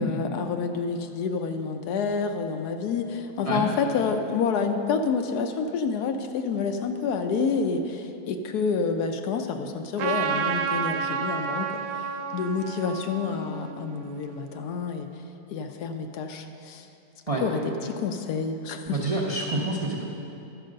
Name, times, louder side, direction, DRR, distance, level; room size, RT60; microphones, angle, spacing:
voice 1, 0.0-15.1 15.5-16.9 17.4-19.0, left 5 dB, 75° left, 6 dB, 1.1 m, -28 dB
Trumpet, 10.0-14.6, right 7 dB, 85° right, 1.2 m, -31 dB
voice 2, 18.9-20.0, right 2 dB, 35° right, -3 dB, 0.5 m, -27 dB
11.5 x 4.8 x 6.4 m, 2.7 s
omnidirectional pair, 1.8 m